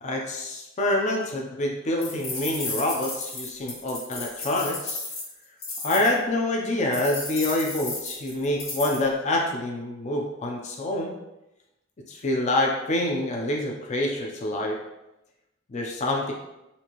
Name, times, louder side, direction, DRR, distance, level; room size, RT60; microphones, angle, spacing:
voice 1, 0.0-5.0 5.8-11.1 12.1-14.8 15.7-16.3, left 1 dB, 35° left, 0 dB, 0.5 m, -26 dB
sound 1, 2.0-6.1 6.9-9.0, left 3 dB, 50° left, 1.4 m, -34 dB
4.2 x 2.6 x 2.9 m, 0.92 s
head